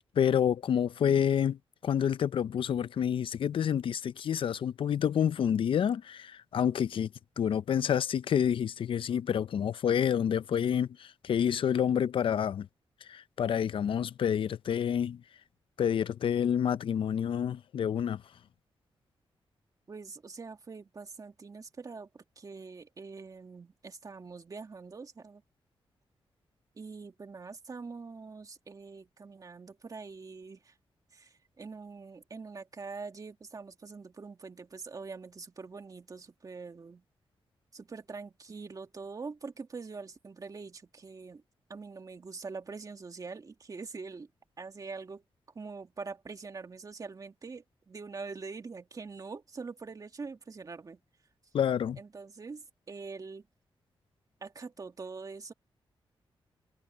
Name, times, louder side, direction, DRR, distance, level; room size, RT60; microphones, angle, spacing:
voice 1, 0.2-7.1 7.4-12.7 13.1-15.2 15.8-18.2 51.5-52.0, left 8 dB, 65° left, 0.5 m, -28 dB
voice 2, 19.9-25.4 26.8-30.7 31.1-37.0 37.7-41.4 41.7-44.3 44.6-45.2 45.5-51.0 52.0-53.5 54.4-55.5, right 4 dB, 40° right, 2.2 m, -44 dB
cardioid pair, 100°, 9 cm